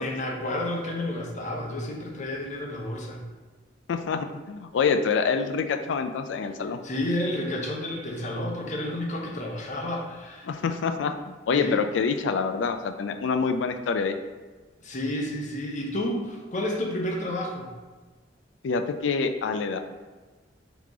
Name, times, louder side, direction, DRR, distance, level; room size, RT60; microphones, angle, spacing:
voice 1, 0.0-3.2 6.8-10.5 11.5-11.9 14.8-17.7, left 1 dB, 40° left, 0 dB, 0.7 m, -31 dB
voice 2, 3.9-6.8 10.4-14.1 18.6-19.8, left 5 dB, 80° left, 8 dB, 0.4 m, -26 dB
3.7 x 3.0 x 3.7 m, 1.3 s
head